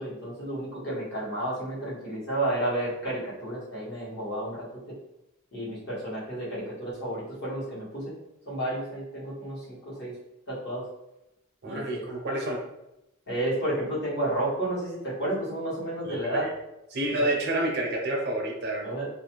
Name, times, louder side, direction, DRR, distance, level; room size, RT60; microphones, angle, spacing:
voice 1, 0.0-4.6 5.5-8.1 8.5-10.1 10.5-10.8 11.6-12.0 13.3-16.4 17.2-17.3 18.8-19.1, right 1 dB, 50° left, -8 dB, 1.2 m, -31 dB
voice 2, 11.6-12.6 16.0-16.5 16.9-18.9, right 1 dB, 50° right, -1 dB, 0.5 m, -29 dB
2.5 x 2.1 x 2.9 m, 0.90 s
head